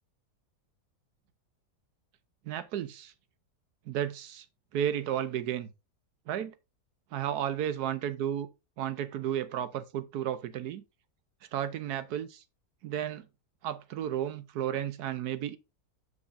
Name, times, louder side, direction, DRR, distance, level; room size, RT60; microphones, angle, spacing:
voice 1, 2.5-3.1 3.9-4.5 4.7-5.7 6.3-6.5 7.1-8.5 8.8-10.8 11.5-12.4 12.8-13.3 13.6-15.6, right 10 dB, 85° right, 1.2 m, -33 dB
8.1 x 6.2 x 2.6 m
omnidirectional pair, 1.6 m